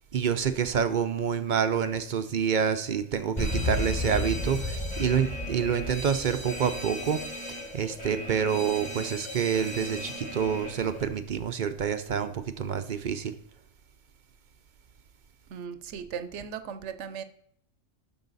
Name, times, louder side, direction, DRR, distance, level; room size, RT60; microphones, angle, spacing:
voice 1, 0.1-13.4, right 7 dB, 50° right, 10 dB, 0.6 m, -28 dB
Alarm, 3.4-11.1, left 1 dB, 20° left, 1.8 m, -34 dB
voice 2, 15.5-17.2, right 7 dB, 70° right, 12 dB, 1.0 m, -37 dB
11.0 x 6.3 x 4.0 m, 0.70 s
omnidirectional pair, 1.3 m